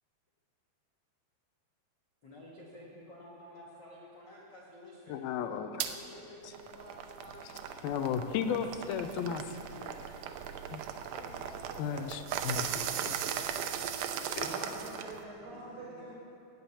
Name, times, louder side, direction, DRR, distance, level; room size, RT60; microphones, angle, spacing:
voice 1, 2.2-8.1 8.6-10.5 11.1-12.3 13.1-13.6 14.2-14.7 15.8-16.0, left 1 dB, 45° left, -5 dB, 1.5 m, -52 dB
voice 2, 5.1-5.9 7.8-9.4 10.7-10.8 11.8-13.2 14.3-14.7, left 7 dB, 80° left, 8 dB, 2.4 m, -35 dB
sound 1, 5.8-5.9 6.4-15.2, right 9 dB, 85° right, 1.8 m, -38 dB
voice 3, 14.4-16.1, right 2 dB, 50° right, -11 dB, 5.0 m, -45 dB
17.0 x 6.0 x 9.7 m, 2.9 s
omnidirectional pair, 4.4 m